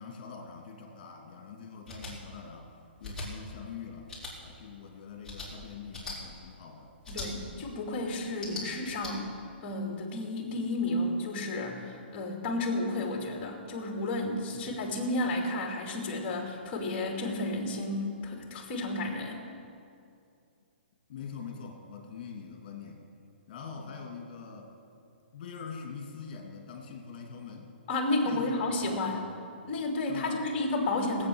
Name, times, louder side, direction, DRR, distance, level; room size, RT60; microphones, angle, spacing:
voice 1, 0.0-2.7 3.0-4.1 4.4-6.9 7.4-7.7 14.5-14.8 21.1-23.0 23.5-24.7 25.3-27.7 28.2-29.2 30.1-30.5, left 6 dB, 45° left, 1 dB, 2.6 m, -44 dB
sound 1, 1.8-2.1 3.0-3.3 4.1-4.3 5.2-5.5 5.9-6.2 7.0-7.3 8.3-9.1, left 3 dB, 5° left, 3.8 m, -39 dB
voice 2, 7.1-9.3 9.6-19.4 27.9-29.3 29.6-31.3, left 2 dB, 25° left, 1 dB, 2.7 m, -32 dB
18.0 x 8.4 x 6.4 m, 2.4 s
hypercardioid pair, 155°, 6 cm